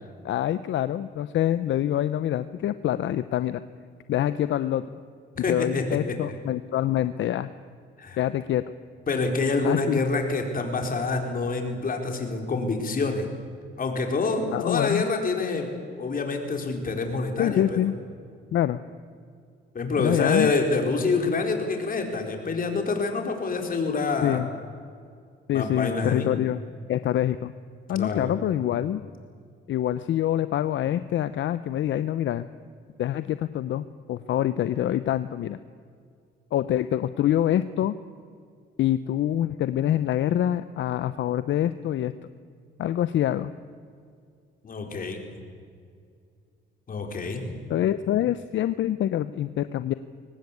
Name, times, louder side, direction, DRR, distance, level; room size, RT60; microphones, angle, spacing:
voice 1, 0.2-3.6 4.1-4.9 5.5-7.5 8.2-8.6 9.6-10.0 14.5-15.0 17.4-17.9 18.5-18.8 20.0-20.5 24.2-24.5 25.5-26.6 26.9-27.5 27.9-29.1 29.7-32.5 33.0-35.6 36.5-38.0 38.8-42.1 42.8-43.5 47.7-49.9, left 11 dB, 70° left, 13 dB, 0.7 m, -25 dB
voice 2, 5.4-6.4 8.0-8.2 9.1-13.3 13.8-15.7 16.0-17.8 19.7-24.4 25.5-26.3 27.9-28.3 44.6-45.2 46.9-47.6, left 3 dB, 45° left, 4 dB, 4.4 m, -27 dB
23.5 x 19.0 x 8.5 m, 2.2 s
cardioid pair, 90°, 20 cm